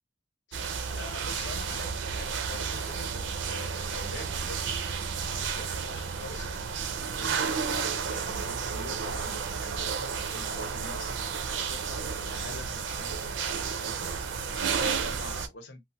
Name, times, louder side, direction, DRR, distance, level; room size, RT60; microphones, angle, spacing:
voice 1, 0.5-1.9 2.2-4.6 4.9-7.7 8.1-15.8, left 3 dB, 70° left, 0.8 m, -45 dB
sound 1, 0.5-15.5, right 6 dB, 80° right, 0.4 m, -32 dB
3.1 x 2.1 x 2.7 m
head